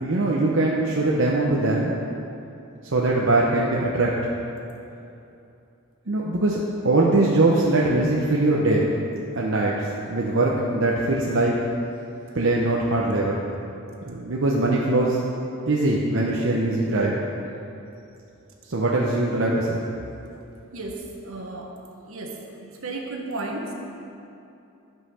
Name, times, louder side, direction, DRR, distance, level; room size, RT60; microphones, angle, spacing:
voice 1, 0.0-1.9 2.9-4.1 6.1-6.6 6.8-8.9 9.3-11.6 12.3-13.4 14.1-15.2 15.7-17.1 18.7-19.8, right 2 dB, 60° right, -3 dB, 0.8 m, -21 dB
voice 2, 20.7-21.7 22.1-23.7, right 2 dB, 80° right, 0 dB, 1.3 m, -34 dB
11.5 x 5.6 x 5.5 m, 2.7 s
head